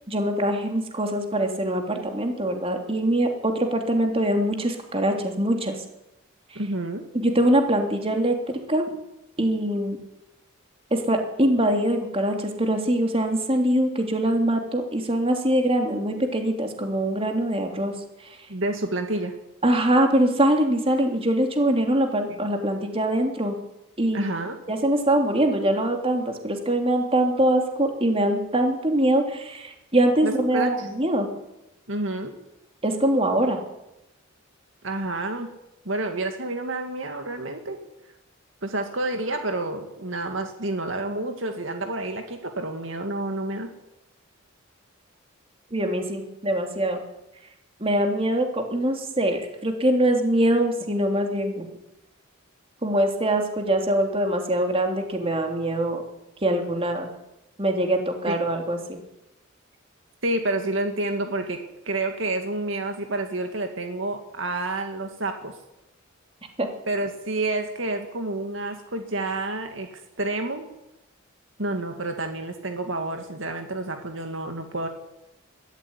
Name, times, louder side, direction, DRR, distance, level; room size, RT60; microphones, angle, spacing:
voice 1, 0.1-5.8 6.5-6.6 7.1-8.8 9.4-10.0 10.9-17.9 18.2-18.4 19.6-23.5 24.0-24.2 24.7-31.3 32.8-33.6 45.7-47.0 47.8-51.7 52.8-56.0 56.4-57.1 57.6-59.0 66.6-66.7, right 1 dB, 30° right, 4 dB, 3.3 m, -23 dB
voice 2, 6.6-7.0 18.5-19.4 22.3-22.4 24.1-24.6 30.2-30.9 31.9-32.3 34.8-35.5 35.8-37.8 38.6-43.7 58.3-58.4 60.2-61.6 61.8-65.5 66.9-70.7 71.6-74.9, right 2 dB, 65° right, 5 dB, 2.2 m, -29 dB
22.5 x 13.5 x 9.8 m, 0.92 s
head